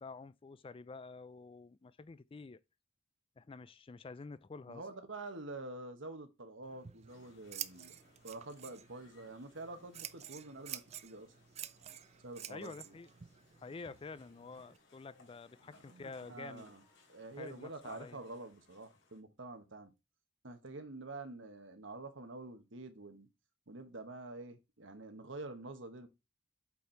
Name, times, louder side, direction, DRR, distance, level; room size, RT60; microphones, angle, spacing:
voice 1, 0.0-2.6 3.4-4.8 12.5-13.1 13.6-16.7 17.4-18.2, left 4 dB, 30° left, 0.4 m, -49 dB
voice 2, 4.7-8.0 8.2-11.3 12.2-12.9 15.7-16.8 17.1-19.9 20.4-23.3 23.7-26.1, right 2 dB, 80° right, 1.3 m, -47 dB
Scissors, 6.6-14.8, right 10 dB, 35° right, 0.5 m, -50 dB
sound 1, 7.1-19.2, left 3 dB, 80° left, 3.6 m, -67 dB
8.3 x 4.5 x 4.5 m
head